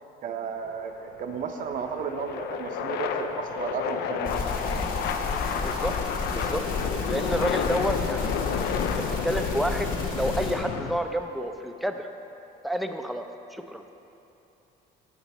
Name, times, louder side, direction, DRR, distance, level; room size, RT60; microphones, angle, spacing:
voice 1, 0.2-4.9, right 6 dB, 50° right, 6 dB, 0.6 m, -34 dB
sound 1, 0.6-11.0, left 7 dB, 75° left, 0.4 m, -31 dB
sound 2, 4.2-10.6, left 3 dB, 55° left, 1.2 m, -32 dB
voice 2, 5.3-5.9 6.3-6.6 7.1-8.3 8.8-12.1 12.6-13.8, equal, ahead, 6 dB, 0.3 m, -30 dB
7.2 x 6.1 x 4.0 m, 2.9 s
cardioid pair, 110°, 17 cm